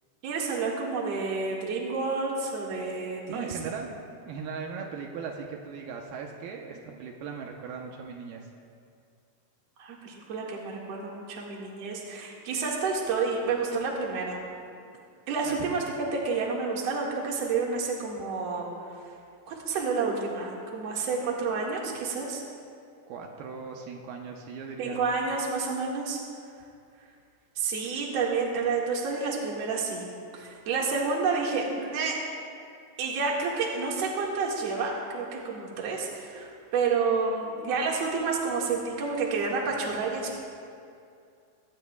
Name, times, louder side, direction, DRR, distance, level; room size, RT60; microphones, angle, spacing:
voice 1, 0.2-3.5 9.8-14.4 15.3-18.7 19.5-22.4 24.8-26.2 27.6-30.1 30.3-32.2 33.0-40.4, right 4 dB, 50° right, -2 dB, 2.5 m, -29 dB
voice 2, 3.3-3.9 4.3-8.5 15.5-15.6 23.1-25.0, right 5 dB, 75° right, 1 dB, 2.7 m, -38 dB
22.0 x 18.0 x 2.4 m, 2.4 s
omnidirectional pair, 4.6 m